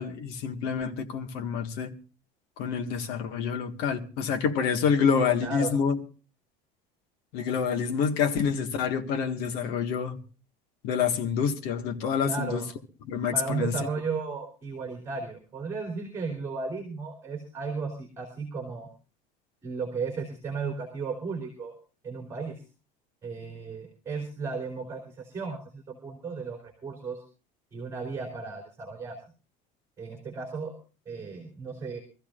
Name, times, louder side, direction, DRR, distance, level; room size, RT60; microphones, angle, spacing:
voice 1, 0.0-1.9 2.6-6.0 7.3-10.2 10.8-12.6 13.1-13.7, left 6 dB, 65° left, 1.8 m, -27 dB
voice 2, 5.4-5.7 12.2-12.7 13.3-18.9 19.6-21.8 22.0-22.6 23.2-27.2 27.7-29.2 30.0-30.7 31.1-32.0, right 4 dB, 15° right, 3.4 m, -34 dB
25.0 x 14.5 x 2.5 m
cardioid pair, 170°, 17 cm